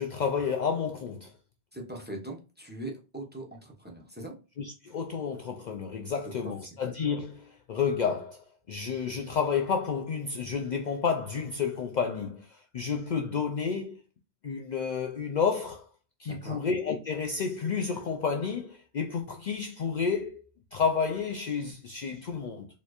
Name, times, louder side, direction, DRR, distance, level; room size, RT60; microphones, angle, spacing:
voice 1, 0.0-1.3 4.6-14.0 14.4-15.8 16.2-20.4 20.7-22.7, left 6 dB, 55° left, 0.5 m, -30 dB
voice 2, 1.7-4.3 6.4-6.5 16.3-16.6, right 1 dB, 10° right, 0.8 m, -40 dB
4.2 x 3.1 x 2.4 m
omnidirectional pair, 1.1 m